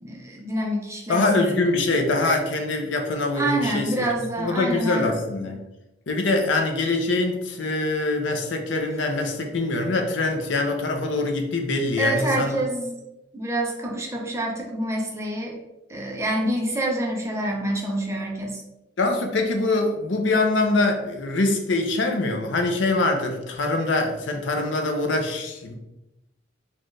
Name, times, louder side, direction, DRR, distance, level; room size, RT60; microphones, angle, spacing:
voice 1, 0.0-1.5 3.3-5.1 12.0-13.0 13.3-15.6 15.9-18.6, right 1 dB, 15° right, -1 dB, 0.6 m, -27 dB
voice 2, 1.1-4.0 4.4-5.6 6.1-12.6 19.0-25.8, left 2 dB, 70° left, 3 dB, 0.6 m, -24 dB
4.2 x 2.4 x 3.2 m, 0.95 s
head